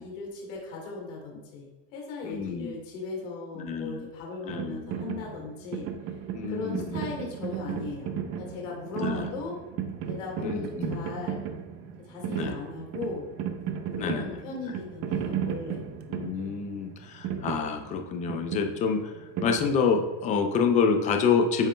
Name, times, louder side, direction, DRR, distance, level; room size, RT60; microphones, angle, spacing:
voice 1, 0.0-5.9 6.5-8.1 8.4-9.6 10.1-11.5 12.0-13.3 14.0-15.8, left 4 dB, 75° left, -1 dB, 1.9 m, -37 dB
voice 2, 2.2-2.8 3.5-4.1 4.4-4.9 6.4-7.0 9.0-9.3 10.4-11.0 12.4-12.5 14.0-14.4 16.1-19.1 19.4-21.7, left 5 dB, 20° left, 5 dB, 0.4 m, -27 dB
sound 1, 4.5-20.2, right 8 dB, 35° right, 0.6 m, -35 dB
8.4 x 6.1 x 2.2 m, 1.1 s
supercardioid pair, 150°, 38 cm